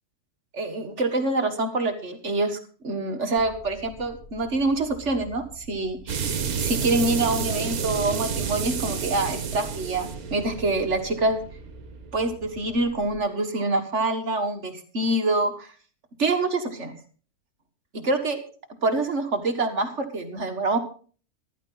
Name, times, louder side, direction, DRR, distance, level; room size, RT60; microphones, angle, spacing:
voice 1, 0.5-2.6 2.8-11.4 12.1-15.7 16.2-16.9 17.9-18.4 18.8-20.8, right 2 dB, 50° right, 6 dB, 1.9 m, -26 dB
sound 1, 3.4-13.2, right 1 dB, 15° right, 4.2 m, -46 dB
sound 2, 6.1-12.6, right 6 dB, 75° right, 1.7 m, -30 dB
14.5 x 12.5 x 3.9 m, 0.40 s
omnidirectional pair, 1.6 m